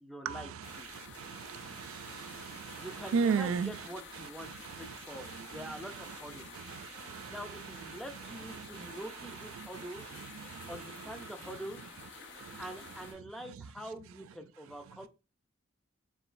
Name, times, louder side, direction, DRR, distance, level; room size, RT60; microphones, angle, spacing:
voice 1, 0.0-0.9 2.8-6.5 7.3-10.1 10.7-11.8 12.6-15.1, right 1 dB, ahead, 0.5 m, -45 dB
sound 1, 0.6-13.1, left 4 dB, 65° left, 0.9 m, -50 dB
voice 2, 0.9-3.7 4.6-5.6 6.5-7.4 8.6-9.0 9.6-10.7 12.4-12.6, right 6 dB, 90° right, 0.3 m, -36 dB
4.8 x 3.1 x 2.5 m
head